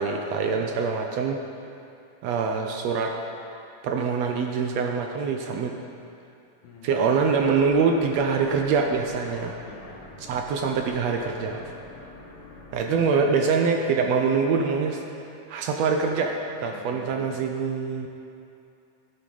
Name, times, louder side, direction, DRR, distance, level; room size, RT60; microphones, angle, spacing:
voice 1, 0.0-1.4 2.2-3.1 3.8-5.7 6.8-9.6 10.2-11.7 12.7-15.0 15.5-18.1, right 5 dB, 75° right, 3 dB, 1.7 m, -24 dB
sound 1, 7.3-12.9, left 1 dB, 40° left, 1.7 m, -46 dB
voice 2, 9.7-10.5 12.4-12.5 12.7-13.1 16.6-17.5, left 5 dB, 85° left, 0 dB, 2.8 m, -45 dB
16.0 x 7.9 x 4.9 m, 2.7 s
omnidirectional pair, 3.5 m